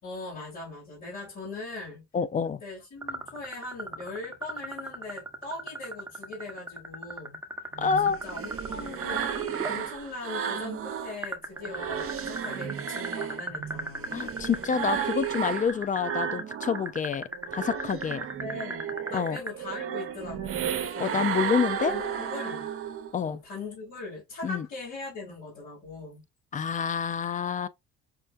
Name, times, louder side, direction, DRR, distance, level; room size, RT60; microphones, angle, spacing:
voice 1, 0.0-2.0 2.6-7.4 8.1-14.2 18.4-21.3 21.9-22.7 23.2-26.2, left 3 dB, 65° left, 2.5 m, -40 dB
voice 2, 2.1-2.6 7.8-8.2 14.1-18.3 19.1-19.4 21.0-21.9 23.1-23.4 24.4-24.7 26.5-27.7, left 6 dB, 25° left, 0.3 m, -28 dB
sound 1, 3.0-9.8 11.2-19.5, right 2 dB, 10° right, 0.8 m, -36 dB
sound 2, 7.8-11.2 11.6-16.9 17.3-23.2, right 8 dB, 45° right, 0.7 m, -33 dB
5.6 x 2.2 x 2.5 m
supercardioid pair, 75°, 31 cm